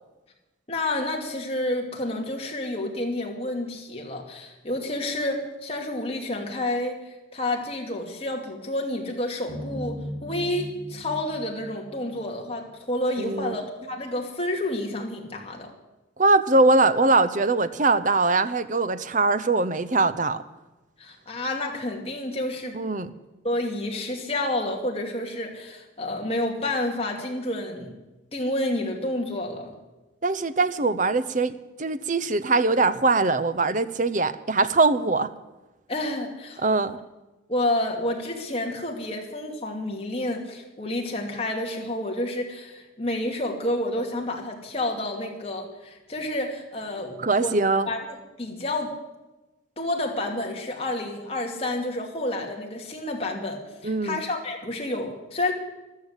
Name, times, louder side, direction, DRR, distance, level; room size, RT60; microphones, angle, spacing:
voice 1, 0.7-7.0 7.3-15.7 21.0-22.8 23.4-28.0 28.3-29.7 35.9-36.6 37.5-47.6 47.9-48.9 49.8-55.5, left 1 dB, 30° left, 1 dB, 2.5 m, -29 dB
sound 1, 9.5-12.7, equal, 60° left, 2.1 m, -38 dB
voice 2, 13.2-13.6 16.2-20.4 22.7-23.1 30.2-31.5 31.8-35.3 36.6-37.0 47.2-47.9 53.8-54.2, right 3 dB, 40° right, 13 dB, 0.7 m, -22 dB
14.0 x 12.5 x 8.2 m, 1.1 s
head